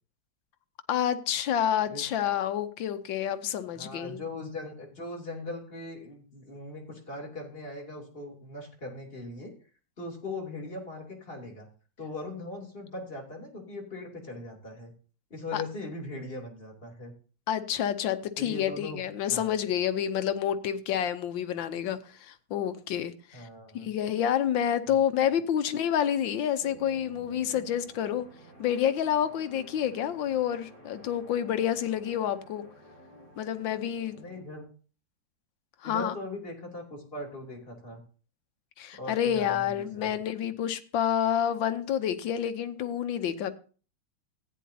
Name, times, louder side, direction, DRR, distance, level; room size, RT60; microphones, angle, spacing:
voice 1, 0.9-4.2 15.5-15.6 17.5-23.5 23.7-28.3 28.6-32.7 33.4-34.2 35.8-36.1 38.8-43.5, left 9 dB, 80° left, 11 dB, 1.5 m, -28 dB
voice 2, 3.7-9.5 10.0-11.7 12.0-14.9 15.3-17.1 18.4-19.0 19.3-19.6 23.3-23.9 24.9-25.0 34.2-34.7 35.8-38.0 38.9-40.1, left 2 dB, 30° left, -1 dB, 2.9 m, -40 dB
sound 1, 26.6-34.4, right 2 dB, 35° right, 6.3 m, -51 dB
15.0 x 9.3 x 2.8 m, 0.37 s
omnidirectional pair, 2.1 m